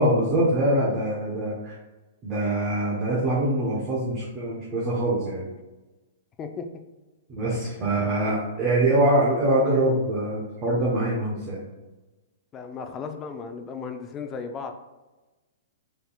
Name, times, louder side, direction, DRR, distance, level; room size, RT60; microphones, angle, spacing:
voice 1, 0.0-1.7 2.2-5.5 7.3-11.6, right 1 dB, 25° right, -6 dB, 1.0 m, -24 dB
voice 2, 12.5-14.7, left 5 dB, 20° left, 5 dB, 0.4 m, -36 dB
4.4 x 3.5 x 2.3 m, 1.1 s
hypercardioid pair, 155°, 0 cm